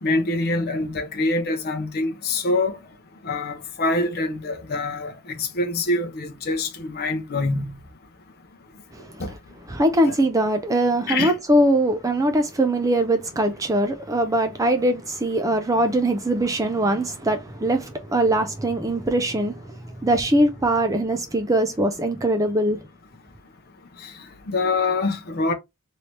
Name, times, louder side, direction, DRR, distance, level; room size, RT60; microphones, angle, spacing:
voice 1, 0.0-2.8 3.2-7.8 9.2-9.3 10.0-10.1 11.1-11.3 24.0-24.1 24.5-25.5, left 2 dB, 45° left, 0.6 m, -25 dB
voice 2, 9.7-22.8, right 1 dB, 15° right, 0.4 m, -22 dB
3.2 x 2.7 x 3.1 m
head